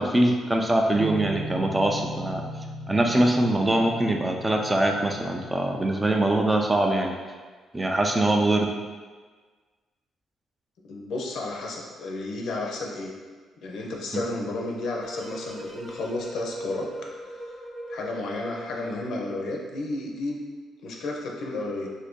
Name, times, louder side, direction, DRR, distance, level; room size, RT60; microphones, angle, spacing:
voice 1, 0.0-2.4 2.9-7.1 7.7-8.7 14.1-14.2, right 1 dB, 15° right, 2 dB, 0.3 m, -23 dB
sound 1, 0.9-6.5, equal, 65° right, 0.6 m, -38 dB
voice 2, 10.9-13.1 13.6-17.1 17.9-20.4 20.8-21.9, left 2 dB, 70° left, -1 dB, 0.5 m, -32 dB
sound 2, 15.0-19.3, equal, ahead, 0.7 m, -39 dB
2.6 x 2.6 x 3.6 m, 1.4 s
cardioid pair, 90°, 0 cm